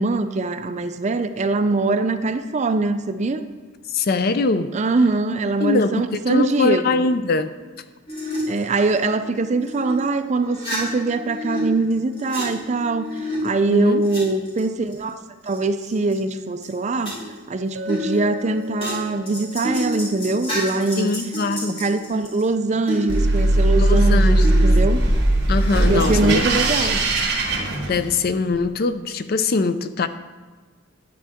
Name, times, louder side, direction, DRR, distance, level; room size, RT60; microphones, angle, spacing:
voice 1, 0.0-3.5 4.7-7.1 8.5-17.2 17.5-21.1 21.8-25.0 25.9-27.0, right 3 dB, 35° right, 10 dB, 0.4 m, -23 dB
voice 2, 3.9-4.7 5.6-7.5 13.7-14.0 21.0-21.8 23.8-24.7 25.5-26.5 26.9-27.1 27.9-30.1, left 3 dB, 50° left, 12 dB, 0.4 m, -22 dB
sound 1, 8.1-10.0 10.3-11.6 11.9-14.2 14.5-15.1 15.5-16.3 16.6-16.7 17.0-17.5 17.9-22.4 22.9-24.0 24.4-25.3 26.0-26.3, left 1 dB, 30° left, 3.4 m, -31 dB
Chink clink, 17.8-22.2, left 4 dB, 75° right, 1.0 m, -41 dB
sound 2, 23.1-28.4, right 1 dB, 55° right, 1.4 m, -18 dB
10.0 x 9.1 x 3.6 m, 1.4 s
head